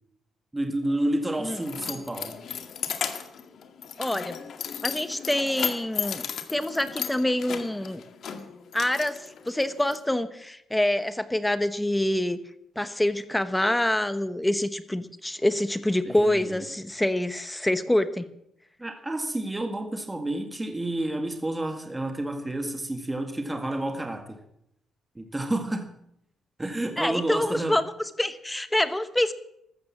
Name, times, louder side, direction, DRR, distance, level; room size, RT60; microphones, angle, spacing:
voice 1, 0.5-2.4 16.0-16.7 18.8-24.4 25.2-25.9 26.6-27.8, right 1 dB, 15° right, 5 dB, 2.0 m, -30 dB
Keys jangling, 0.9-10.0, left 7 dB, 65° left, 2.1 m, -35 dB
voice 2, 4.0-4.4 4.8-6.2 6.5-8.0 8.7-9.2 9.4-12.4 12.8-18.2 27.0-27.8 28.2-29.3, left 1 dB, 10° left, 12 dB, 1.2 m, -26 dB
14.0 x 13.5 x 7.4 m, 0.76 s
cardioid pair, 90°, 0 cm